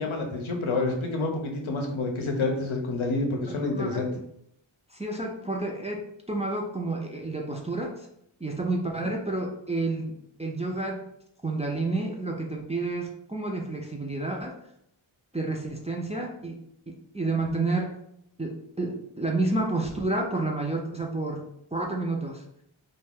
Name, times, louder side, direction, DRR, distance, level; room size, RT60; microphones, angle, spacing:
voice 1, 0.0-4.1 9.0-9.1, left 3 dB, 75° left, 2 dB, 0.7 m, -28 dB
voice 2, 3.5-4.1 4.9-8.1 8.4-11.0 11.4-14.5 15.3-16.6 16.9-17.9 18.4-22.4, right 2 dB, 15° right, 0 dB, 0.3 m, -30 dB
2.5 x 2.2 x 3.4 m, 0.74 s
wide cardioid pair, 55°, 47 cm